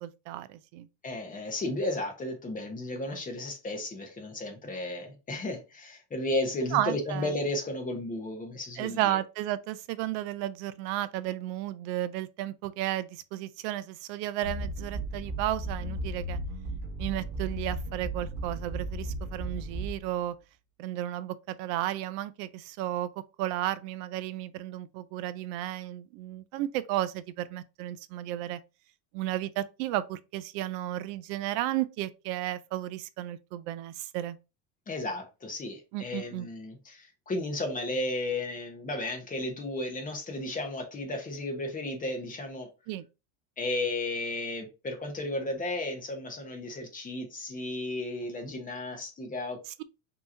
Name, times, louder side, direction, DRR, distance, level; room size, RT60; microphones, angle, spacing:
voice 1, 0.0-0.9 6.7-7.3 8.8-16.4 17.0-20.3 20.8-23.1 23.4-28.6 29.1-34.4 35.9-36.5 42.9-43.1, right 14 dB, 85° right, 0.6 m, -33 dB
voice 2, 1.0-9.2 34.9-42.7 43.6-49.6, left 2 dB, 15° left, 0.9 m, -34 dB
sound 1, 14.4-20.2, right 1 dB, 20° right, 1.0 m, -35 dB
5.5 x 2.9 x 2.6 m
cardioid pair, 155°, 48 cm